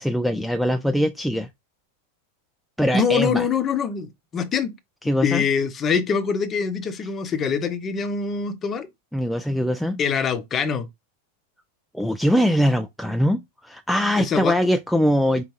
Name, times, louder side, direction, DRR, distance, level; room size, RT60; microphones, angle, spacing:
voice 1, 0.0-1.5 2.8-3.5 5.1-5.4 9.1-10.0 11.9-15.4, equal, ahead, 0.3 m, -22 dB
voice 2, 2.9-4.7 5.2-8.9 10.0-10.9 14.2-14.5, left 6 dB, 25° left, 0.7 m, -24 dB
5.3 x 2.7 x 3.0 m
figure-of-eight pair, 90°, 0 cm